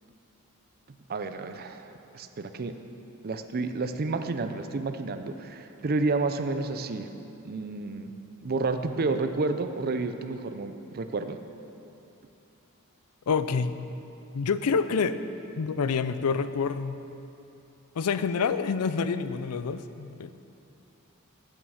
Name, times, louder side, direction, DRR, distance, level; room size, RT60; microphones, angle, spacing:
voice 1, 1.1-2.8 3.2-7.1 7.4-8.1 8.4-11.4, right 3 dB, 45° right, 8 dB, 0.5 m, -30 dB
voice 2, 13.3-13.8 14.3-15.2 15.6-17.0 18.0-20.4, left 5 dB, 85° left, 12 dB, 0.5 m, -27 dB
9.1 x 8.6 x 6.3 m, 2.8 s
head